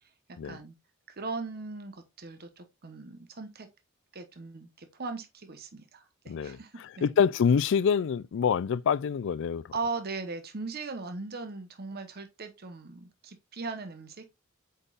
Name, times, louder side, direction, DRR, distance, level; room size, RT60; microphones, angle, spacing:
voice 1, 0.4-0.7 1.2-3.7 4.1-7.2 9.7-14.3, right 3 dB, 50° right, 1.0 m, -39 dB
voice 2, 6.3-6.6 7.0-9.6, left 7 dB, 60° left, 0.3 m, -26 dB
8.1 x 5.3 x 2.4 m
head